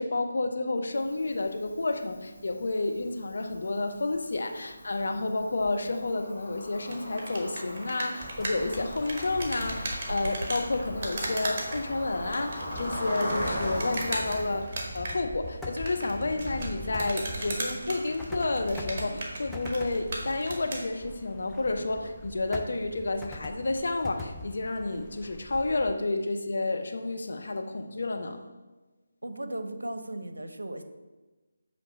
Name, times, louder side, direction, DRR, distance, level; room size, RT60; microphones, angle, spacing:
voice 1, 0.0-28.4, left 2 dB, 60° left, 6 dB, 0.6 m, -30 dB
Cricket, 0.9-14.6, equal, 25° left, 2.2 m, -40 dB
sound 1, 6.9-20.9, right 1 dB, 30° right, 1.3 m, -37 dB
sound 2, 8.2-25.9, left 1 dB, 5° left, 0.4 m, -43 dB
voice 2, 29.2-30.8, right 1 dB, 75° right, 8 dB, 0.6 m, -36 dB
7.1 x 3.2 x 5.1 m, 1.2 s
figure-of-eight pair, 155°, 0 cm